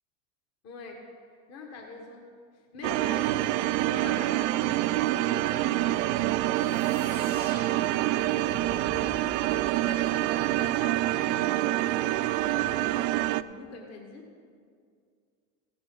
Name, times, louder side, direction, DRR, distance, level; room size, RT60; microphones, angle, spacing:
voice 1, 0.6-1.0 1.5-2.3 2.7-9.3 9.6-14.3, left 4 dB, 40° left, 1 dB, 1.7 m, -44 dB
sound 1, 2.8-13.4, right 16 dB, 60° right, 0.5 m, -26 dB
sound 2, 6.5-11.1, left 2 dB, 25° left, 1.3 m, -47 dB
15.0 x 10.5 x 3.9 m, 2.1 s
supercardioid pair, 110°, 41 cm